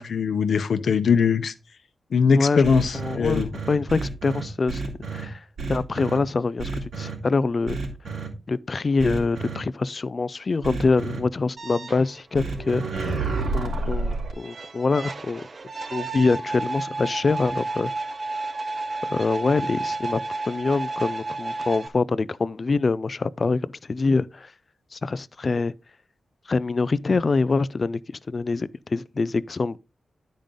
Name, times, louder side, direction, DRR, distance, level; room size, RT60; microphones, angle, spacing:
voice 1, 0.0-1.5 2.1-3.5, left 5 dB, 65° left, 0.7 m, -21 dB
sound 1, 2.6-5.2 5.6-6.2 6.6-7.1 7.7-8.3 9.0-9.6 10.6-11.2 12.3-14.3, right 3 dB, 80° right, 3.0 m, -29 dB
voice 2, 2.9-4.8 5.1-7.8 8.5-13.1 13.5-15.5 15.9-17.9 19.1-20.2 20.5-24.5 24.9-25.7 26.5-29.8, left 3 dB, 35° left, 0.3 m, -25 dB
sound 2, 11.6-21.9, right 3 dB, 35° right, 0.6 m, -32 dB
10.5 x 5.2 x 3.7 m
wide cardioid pair, 155°, 0 cm